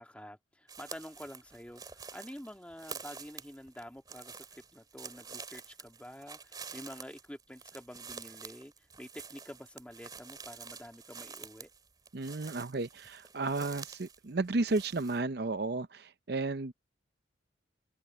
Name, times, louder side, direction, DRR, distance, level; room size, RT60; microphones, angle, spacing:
voice 1, 0.0-4.5 4.7-11.7, equal, 5° left, 1.8 m, -48 dB
sound 1, 0.7-14.2 14.4-15.2, right 5 dB, 20° right, 3.0 m, -48 dB
voice 2, 12.1-16.7, right 3 dB, 55° right, 0.7 m, -33 dB
head